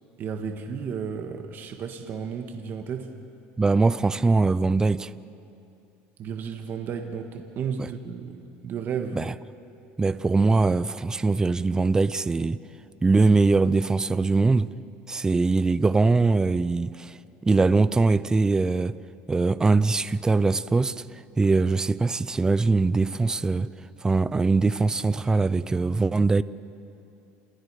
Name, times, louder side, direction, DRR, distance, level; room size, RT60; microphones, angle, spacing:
voice 1, 0.2-3.1 6.2-9.2, right 6 dB, 45° right, 1.7 m, -33 dB
voice 2, 3.6-5.1 7.8-7.9 9.1-9.3 10.0-12.6 13.0-14.7 15.1-17.2 17.4-19.0 19.3-23.7 24.0-26.4, right 3 dB, 15° right, 0.5 m, -22 dB
28.5 x 27.5 x 4.9 m
supercardioid pair, 125°, 5 cm